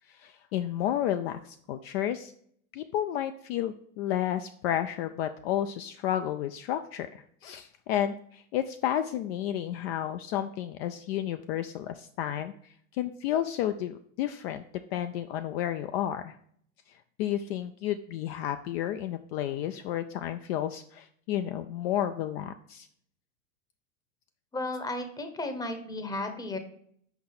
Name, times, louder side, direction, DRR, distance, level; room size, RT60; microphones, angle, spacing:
voice 1, 0.1-2.3 2.7-12.5 12.9-14.6 14.9-16.4 17.2-22.9, left 11 dB, 50° left, 9 dB, 0.4 m, -31 dB
voice 2, 24.5-26.6, left 2 dB, 10° left, 7 dB, 0.8 m, -34 dB
5.8 x 4.7 x 4.2 m, 0.64 s
hypercardioid pair, 105°, 40 cm